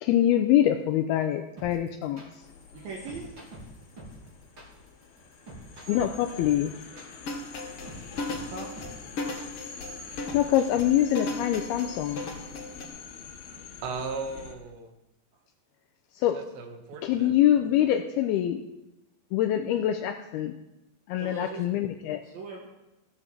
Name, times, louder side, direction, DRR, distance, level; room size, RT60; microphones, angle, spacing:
voice 1, 0.0-2.2 5.9-6.7 10.3-12.3 16.2-16.4 17.0-18.6 19.3-20.5 21.1-22.2, left 11 dB, 85° left, 5 dB, 2.4 m, -24 dB
sound 1, 1.6-11.1, right 1 dB, 30° right, 3.1 m, -46 dB
sound 2, 2.4-14.5, left 5 dB, 65° left, 4.0 m, -45 dB
voice 2, 2.7-3.3 8.5-8.7 21.1-21.7 22.2-22.6, right 4 dB, 60° right, -2 dB, 3.0 m, -39 dB
sound 3, 7.2-12.9, left 2 dB, 50° left, 1.8 m, -35 dB
voice 3, 13.8-14.9 16.3-17.3, right 4 dB, 85° right, 5 dB, 3.6 m, -36 dB
14.5 x 8.2 x 7.4 m, 0.95 s
omnidirectional pair, 5.1 m